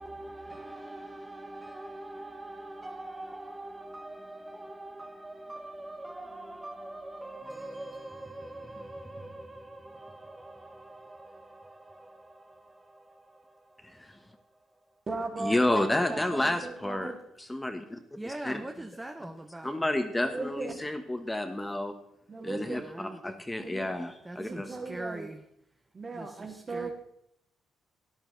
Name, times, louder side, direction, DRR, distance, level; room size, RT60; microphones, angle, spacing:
voice 1, 0.0-15.0 18.2-19.9 22.4-23.2 24.2-25.5 26.1-26.9, right 1 dB, 15° right, 0.8 m, -43 dB
voice 2, 13.8-14.2 15.4-17.1 17.4-18.0 18.3-18.6 19.6-21.9 22.4-24.7, left 1 dB, 10° left, 1.1 m, -30 dB
voice 3, 15.1-17.2 20.2-20.7 22.3-22.9 23.6-23.9 24.4-25.3 25.9-26.9, right 3 dB, 40° right, 2.2 m, -37 dB
13.0 x 10.5 x 3.9 m
cardioid pair, 90°, 0 cm